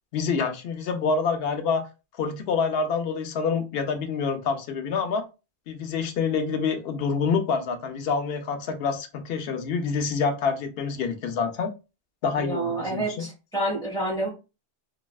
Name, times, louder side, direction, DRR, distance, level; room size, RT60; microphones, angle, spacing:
voice 1, 0.1-1.9 2.2-5.2 5.7-11.7 12.2-13.3, left 5 dB, 65° left, 6 dB, 0.8 m, -27 dB
voice 2, 12.4-14.3, right 2 dB, 5° left, -3 dB, 1.3 m, -28 dB
3.1 x 2.6 x 2.3 m, 0.29 s
omnidirectional pair, 1.1 m